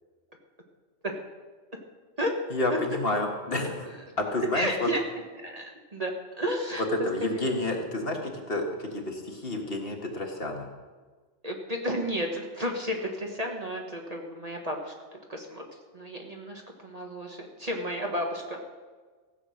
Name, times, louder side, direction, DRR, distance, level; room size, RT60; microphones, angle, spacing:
voice 1, 2.5-4.9 6.8-10.7, left 2 dB, 50° left, 2 dB, 1.8 m, -30 dB
voice 2, 4.5-5.0 5.4-6.1 6.4-6.8 7.2-7.4 11.4-14.9 15.3-15.6 15.9-18.6, equal, 30° right, 1 dB, 1.4 m, -32 dB
15.5 x 7.6 x 6.4 m, 1.4 s
omnidirectional pair, 1.3 m